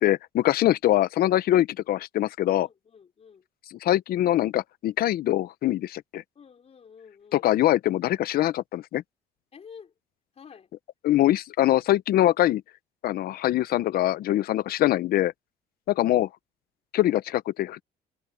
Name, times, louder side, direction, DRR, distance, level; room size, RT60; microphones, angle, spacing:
voice 1, 0.0-2.7 3.7-6.2 7.3-9.0 11.0-12.6 13.0-15.3 15.9-16.3 16.9-17.8, left 13 dB, 65° left, 0.7 m, -23 dB
voice 2, 2.6-3.5 6.3-7.5 9.5-9.9 10.3-10.7 14.8-15.0, left 6 dB, 40° left, 4.7 m, -49 dB
cardioid pair, 110°, 17 cm